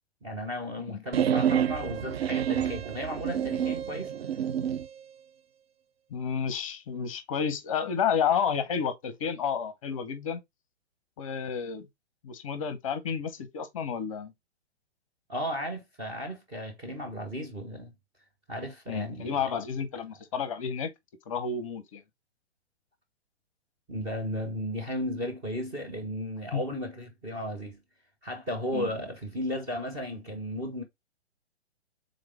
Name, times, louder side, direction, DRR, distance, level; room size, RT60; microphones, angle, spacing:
voice 1, 0.2-4.1 15.3-17.9 18.5-19.5 23.9-27.8 28.2-30.8, equal, 10° right, 0.5 m, -35 dB
sound 1, 1.1-4.9, right 9 dB, 65° right, 0.4 m, -28 dB
voice 2, 6.1-10.4 11.2-11.9 12.2-14.3 18.9-20.9 21.3-22.0 26.5-26.6 28.7-28.9, left 7 dB, 30° left, 0.6 m, -31 dB
3.8 x 3.2 x 3.3 m
figure-of-eight pair, 120°, 34 cm